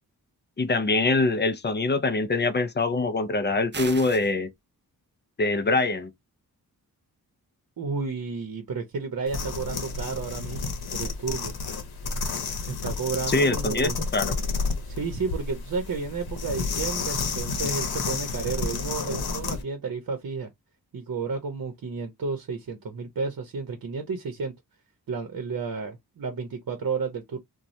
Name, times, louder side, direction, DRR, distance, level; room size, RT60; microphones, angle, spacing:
voice 1, 0.6-4.5 5.4-6.1 13.3-14.3, left 3 dB, 30° left, 0.5 m, -24 dB
sound 1, 3.7-4.3, right 4 dB, 30° right, 0.5 m, -36 dB
voice 2, 7.8-11.5 12.7-14.0 14.9-20.5 20.9-24.5 25.1-27.4, right 4 dB, 60° right, 0.8 m, -32 dB
sound 2, 9.3-19.6, left 4 dB, 75° left, 0.8 m, -31 dB
3.1 x 2.2 x 2.6 m
wide cardioid pair, 90°, 37 cm